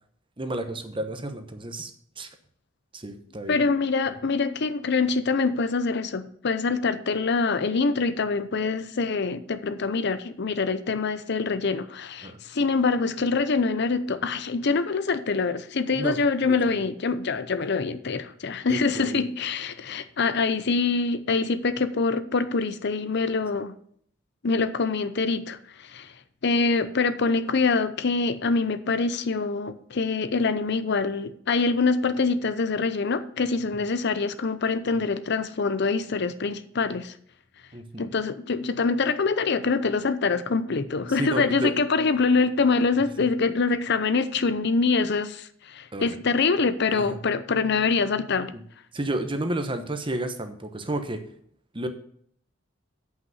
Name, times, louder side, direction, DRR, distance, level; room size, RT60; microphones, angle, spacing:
voice 1, 0.4-1.9 2.2-2.3 2.9-3.6 12.2-12.3 15.9-16.8 18.7-19.2 34.9-35.0 37.7-38.1 41.2-41.7 45.9-46.2 46.9-47.2 48.5-48.6 48.9-51.2 51.7-51.9, right 1 dB, 25° right, 8 dB, 1.1 m, -31 dB
voice 2, 3.5-23.7 24.4-26.1 26.4-37.1 38.0-48.5, left 4 dB, 60° left, 12 dB, 0.7 m, -25 dB
8.3 x 5.9 x 7.9 m, 0.62 s
head